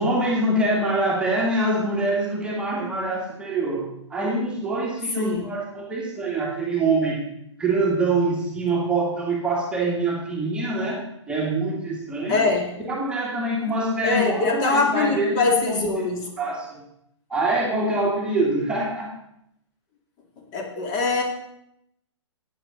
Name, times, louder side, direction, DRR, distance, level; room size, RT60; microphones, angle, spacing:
voice 1, 0.0-7.3 7.6-11.0 11.3-12.4 12.8-15.8 16.4-16.8 17.3-19.1, right 2 dB, 5° right, -3 dB, 1.9 m, -24 dB
voice 2, 5.2-5.5 12.3-12.7 14.0-16.2 20.4-21.2, left 3 dB, 25° left, 2 dB, 2.4 m, -23 dB
13.5 x 9.3 x 3.9 m, 0.78 s
figure-of-eight pair, 125°, 16 cm